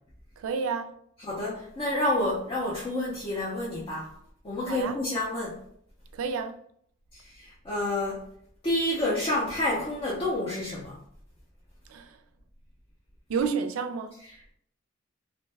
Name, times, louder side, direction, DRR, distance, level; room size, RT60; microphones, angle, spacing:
voice 1, 0.4-0.9 4.7-5.0 6.1-6.5 11.9-12.2 13.3-14.2, right 5 dB, 75° right, 0.3 m, -30 dB
voice 2, 1.2-4.1 4.4-5.6 7.1-8.2 8.6-11.0 14.2-14.5, left 1 dB, 25° left, 0.5 m, -29 dB
2.6 x 2.1 x 3.2 m
head